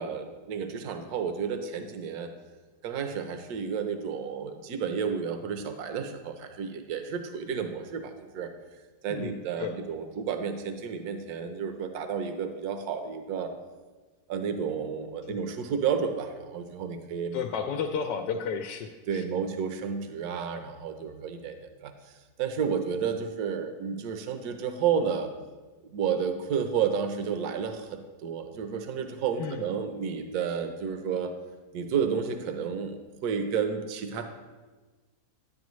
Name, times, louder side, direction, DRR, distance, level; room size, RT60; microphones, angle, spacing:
voice 1, 0.0-2.3 2.8-8.5 9.0-13.5 14.3-17.4 19.1-21.9 22.4-25.3 25.8-31.3 31.7-34.3, right 6 dB, 70° right, 7 dB, 1.2 m, -31 dB
voice 2, 9.1-9.8 15.3-15.4 17.3-19.2 29.4-29.7, left 6 dB, 90° left, 5 dB, 1.2 m, -33 dB
9.9 x 9.6 x 3.1 m, 1.3 s
omnidirectional pair, 1.8 m